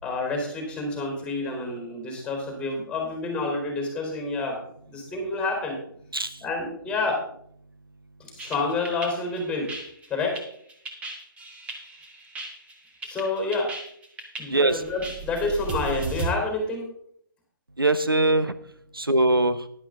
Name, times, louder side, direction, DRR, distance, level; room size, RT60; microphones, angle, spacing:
voice 1, 0.0-4.6 4.9-5.8 6.4-7.2 8.2-9.7 10.1-10.4 13.0-13.7 14.4-16.9, left 3 dB, 10° left, 1 dB, 3.7 m, -28 dB
sound 1, 8.4-16.3, right 4 dB, 10° right, 1.5 m, -36 dB
voice 2, 14.5-14.8 17.8-18.5 18.9-19.6, right 2 dB, 85° right, 12 dB, 0.8 m, -21 dB
11.0 x 11.0 x 3.8 m, 0.66 s
figure-of-eight pair, 130°, 12 cm